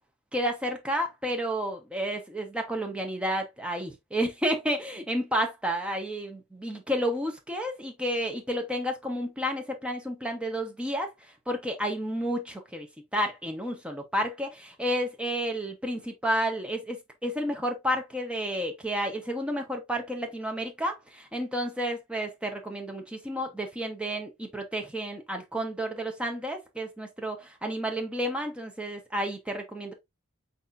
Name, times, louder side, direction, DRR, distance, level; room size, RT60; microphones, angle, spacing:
voice 1, 0.3-11.1 11.5-12.9 13.1-29.9, equal, 5° right, 0.8 m, -31 dB
4.2 x 4.1 x 2.5 m
head